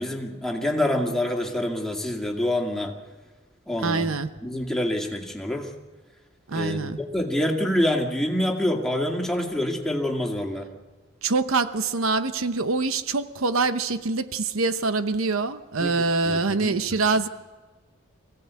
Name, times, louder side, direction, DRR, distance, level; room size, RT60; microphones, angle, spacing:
voice 1, 0.0-2.9 3.7-4.1 4.4-5.7 6.5-10.7 15.8-15.9 16.3-16.8, left 1 dB, ahead, 1 dB, 2.1 m, -26 dB
voice 2, 3.8-4.3 6.5-7.0 11.2-17.3, right 3 dB, 80° right, 11 dB, 0.9 m, -25 dB
24.5 x 16.0 x 8.3 m, 1.3 s
head